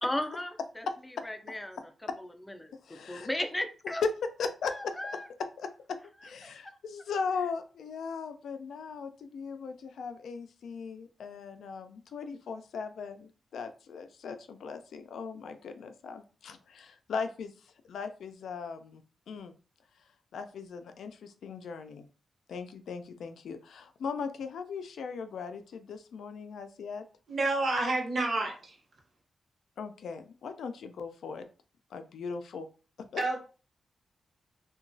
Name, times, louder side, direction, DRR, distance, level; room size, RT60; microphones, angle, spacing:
voice 1, 0.0-0.9 1.2-1.8 2.2-2.7 3.1-4.0 4.7-5.3, left 1 dB, 15° left, 6 dB, 0.4 m, -35 dB
voice 2, 2.8-3.3 4.4-4.9 5.6-19.5 20.3-22.1 22.5-27.0 29.8-31.5 31.9-32.7 33.0-33.2, left 5 dB, 90° left, 9 dB, 0.3 m, -39 dB
voice 3, 27.3-28.8 33.2-33.4, right 2 dB, 55° right, 0 dB, 0.8 m, -29 dB
2.9 x 2.2 x 2.6 m, 0.37 s
cardioid pair, 100°, 0 cm